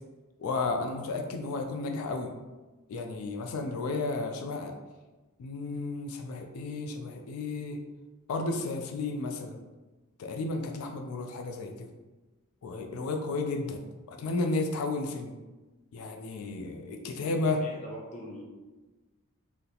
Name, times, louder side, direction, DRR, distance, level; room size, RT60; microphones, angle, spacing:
voice 1, 0.4-2.3 2.9-4.7 5.4-7.8 8.3-9.6 10.2-11.9 12.6-13.8 14.1-15.3 15.9-17.6, left 3 dB, 85° left, 4 dB, 0.4 m, -33 dB
voice 2, 17.5-18.4, equal, 35° left, -2 dB, 0.5 m, -42 dB
3.8 x 2.1 x 2.8 m, 1.2 s
head